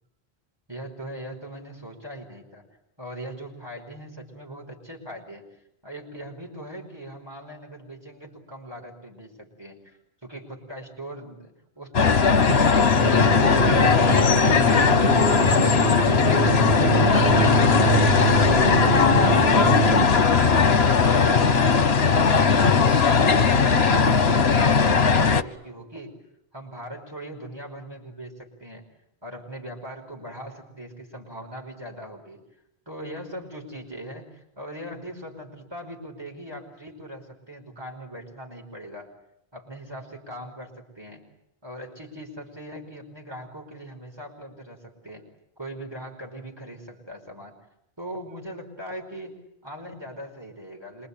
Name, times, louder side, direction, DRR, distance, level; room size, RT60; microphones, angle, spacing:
voice 1, 0.7-2.6 3.0-5.5 5.8-15.1 15.4-18.2 18.5-20.8 21.1-26.2 26.5-28.9 29.2-32.4 32.9-39.1 39.5-41.2 41.6-45.2 45.6-47.6 48.0-51.1, equal, 25° right, 0 dB, 5.2 m, -40 dB
sound 1, 11.9-25.4, left 5 dB, 75° left, 1.5 m, -18 dB
sound 2, 13.0-20.1, right 5 dB, 55° right, 1.8 m, -26 dB
27.0 x 24.0 x 8.6 m, 0.80 s
omnidirectional pair, 1.1 m